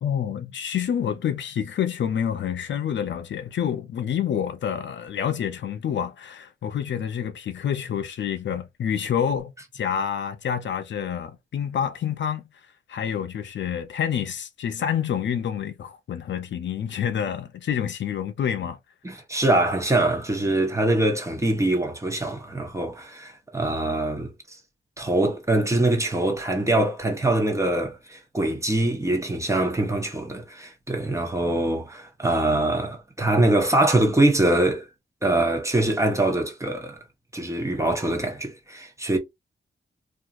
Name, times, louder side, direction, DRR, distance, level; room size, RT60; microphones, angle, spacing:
voice 1, 0.0-12.4 12.9-18.8, left 8 dB, 70° left, 0.5 m, -28 dB
voice 2, 19.0-24.6 25.0-34.9 35.2-37.0 37.3-39.2, right 1 dB, 15° right, 0.8 m, -23 dB
2.8 x 2.4 x 2.3 m
cardioid pair, 85°, 19 cm